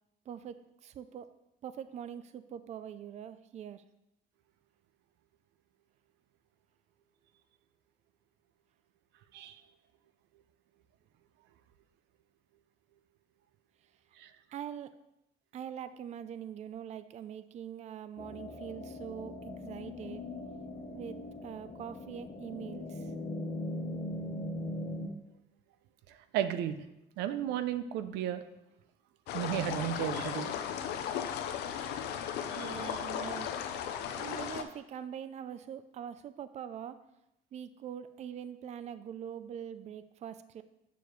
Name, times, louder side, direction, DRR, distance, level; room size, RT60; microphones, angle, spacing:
voice 1, 0.3-1.3 1.6-3.8 14.5-14.9 15.5-20.2 20.9-23.1 32.6-33.5 34.2-37.0 37.5-40.6, right 9 dB, 40° right, 12 dB, 0.4 m, -43 dB
sound 1, 18.2-25.1, left 1 dB, 30° left, 1.0 m, -40 dB
voice 2, 26.1-26.8 27.2-28.4 29.3-30.5 32.5-32.9, right 10 dB, 90° right, 11 dB, 0.6 m, -34 dB
sound 2, 29.3-34.6, left 9 dB, 80° left, 0.6 m, -36 dB
6.9 x 6.9 x 3.1 m, 0.86 s
cardioid pair, 110°, 17 cm